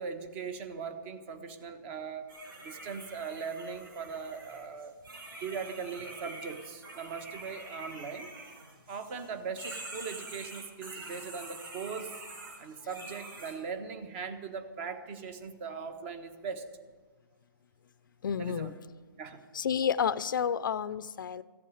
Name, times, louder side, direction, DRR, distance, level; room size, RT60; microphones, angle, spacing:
voice 1, 0.0-2.3 2.6-4.9 5.4-8.3 8.9-12.2 12.6-16.7 18.4-18.7 19.2-19.4, right 5 dB, 30° right, 9 dB, 1.2 m, -40 dB
sound 1, 2.3-9.3 9.6-13.6, right 2 dB, 75° right, 5.5 m, -46 dB
voice 2, 18.2-18.7 19.5-21.4, left 7 dB, 65° left, 17 dB, 0.5 m, -30 dB
14.5 x 8.4 x 8.6 m, 1.4 s
hypercardioid pair, 155°, 12 cm